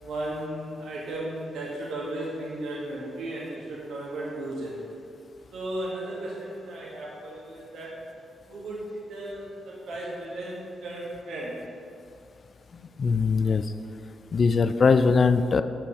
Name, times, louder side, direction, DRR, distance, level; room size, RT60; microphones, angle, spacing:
voice 1, 0.0-4.7 5.5-8.0 8.5-11.6, right 1 dB, 75° right, -5 dB, 1.6 m, -35 dB
voice 2, 13.0-13.7 14.3-15.6, left 5 dB, 50° left, 11 dB, 0.4 m, -21 dB
6.7 x 5.9 x 4.9 m, 2.5 s
supercardioid pair, 55°, 0 cm